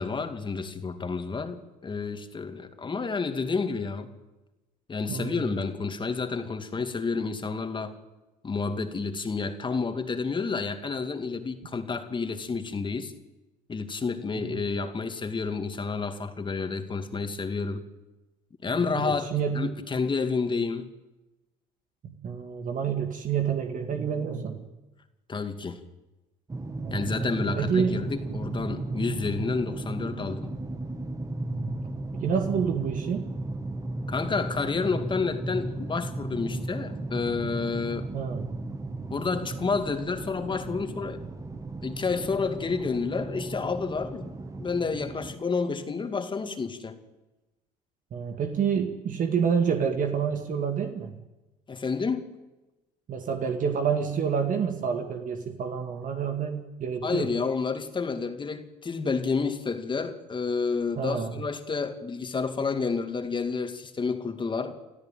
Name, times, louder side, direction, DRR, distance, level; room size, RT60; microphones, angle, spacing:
voice 1, 0.0-4.1 4.9-7.9 8.4-13.1 13.7-17.8 18.6-19.3 19.5-20.9 25.3-25.8 26.9-30.6 34.1-38.1 39.1-41.2 41.8-44.3 44.6-47.0 51.7-52.2 57.0-64.7, left 4 dB, 30° left, 7 dB, 2.4 m, -30 dB
voice 2, 5.1-5.5 14.3-14.6 18.7-19.6 22.0-24.6 26.8-28.0 31.5-31.8 32.1-33.3 38.1-38.5 48.1-51.1 53.1-57.3 61.0-61.3, right 7 dB, 55° right, 5 dB, 2.2 m, -28 dB
sound 1, 26.5-45.3, right 2 dB, 20° right, 2.0 m, -35 dB
30.0 x 13.0 x 9.2 m, 1.1 s
supercardioid pair, 85°, 17 cm